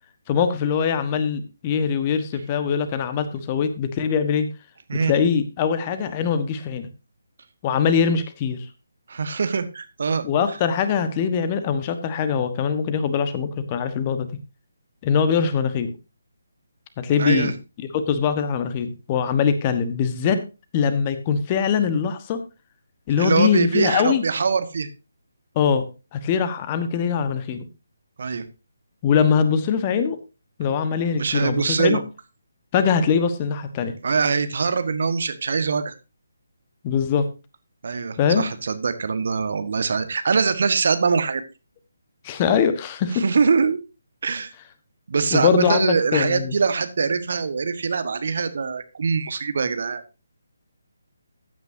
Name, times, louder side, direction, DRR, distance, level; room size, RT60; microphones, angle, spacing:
voice 1, 0.3-4.5 5.0-6.9 7.6-8.7 10.2-14.3 15.0-15.9 17.0-17.5 17.9-20.4 20.7-22.4 23.1-24.2 25.5-25.8 26.1-27.6 29.0-30.2 30.6-32.0 32.7-33.9 36.8-37.2 38.2-38.5 42.2-43.2 45.3-46.5, left 7 dB, 25° left, 10 dB, 1.3 m, -22 dB
voice 2, 9.1-10.2 17.2-17.5 23.2-24.9 28.2-28.4 31.2-32.0 34.0-35.9 37.8-41.4 43.1-43.8 44.2-44.5 45.1-50.0, right 5 dB, 50° right, 11 dB, 1.5 m, -23 dB
14.5 x 9.4 x 2.7 m, 0.29 s
figure-of-eight pair, 145°, 0 cm